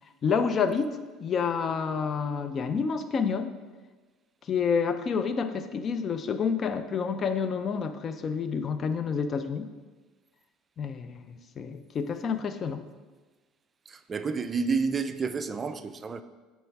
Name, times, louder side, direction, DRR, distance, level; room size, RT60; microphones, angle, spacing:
voice 1, 0.2-3.5 4.4-9.7 10.8-12.8, left 6 dB, 40° left, 0.4 m, -29 dB
voice 2, 13.9-16.2, right 5 dB, 30° right, 0.4 m, -30 dB
6.7 x 3.1 x 4.6 m
supercardioid pair, 95°, 0 cm